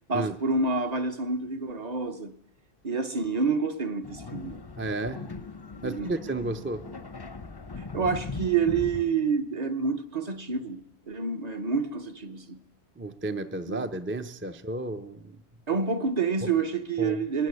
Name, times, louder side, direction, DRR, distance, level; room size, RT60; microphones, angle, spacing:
voice 1, 0.1-2.3 2.8-4.6 5.8-6.1 7.9-12.6 13.7-13.9 15.7-17.5, right 5 dB, 40° right, 1.0 m, -28 dB
sound 1, 4.0-9.0, left 3 dB, 25° left, 0.7 m, -39 dB
voice 2, 4.8-5.2 5.8-6.9 13.0-15.4 16.4-16.5 17.0-17.2, right 2 dB, 15° right, 0.5 m, -32 dB
21.5 x 13.0 x 9.6 m
omnidirectional pair, 1.1 m